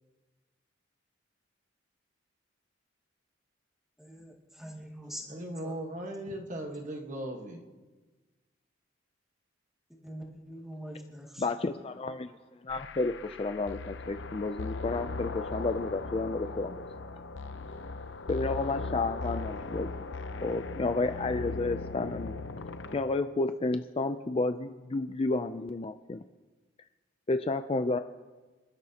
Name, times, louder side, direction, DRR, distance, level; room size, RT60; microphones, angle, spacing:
voice 1, 4.0-5.8 10.0-11.5, equal, ahead, -3 dB, 2.3 m, -44 dB
voice 2, 5.3-7.6, right 1 dB, 40° right, 2 dB, 1.4 m, -38 dB
voice 3, 11.4-12.3 12.6-16.8 18.3-19.9 20.4-22.3 22.9-26.2 27.3-28.0, left 3 dB, 30° left, 9 dB, 0.4 m, -31 dB
sound 1, 12.7-23.0, left 3 dB, 70° left, 0.7 m, -38 dB
27.0 x 12.5 x 2.9 m, 1.3 s
head